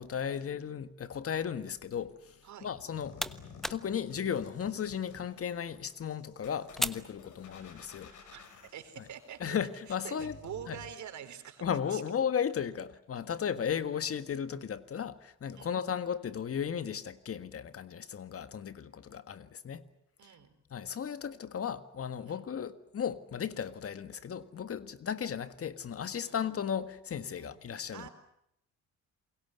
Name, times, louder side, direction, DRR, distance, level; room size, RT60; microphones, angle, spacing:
voice 1, 0.0-3.2 3.7-8.1 9.4-10.3 10.7-10.8 11.6-19.8 20.7-28.1, left 8 dB, 50° left, 1.6 m, -35 dB
sound 1, 2.7-8.0, equal, ahead, 1.1 m, -41 dB
sound 2, 2.9-10.9, left 6 dB, 75° left, 5.9 m, -53 dB
voice 2, 8.7-9.6 9.9-11.6 11.9-12.0 15.5-15.8 20.2-20.5 22.2-22.5 26.2-26.4 27.3-27.6 27.9-28.1, right 9 dB, 70° right, 4.2 m, -46 dB
28.5 x 22.5 x 8.1 m
cardioid pair, 90°, 30 cm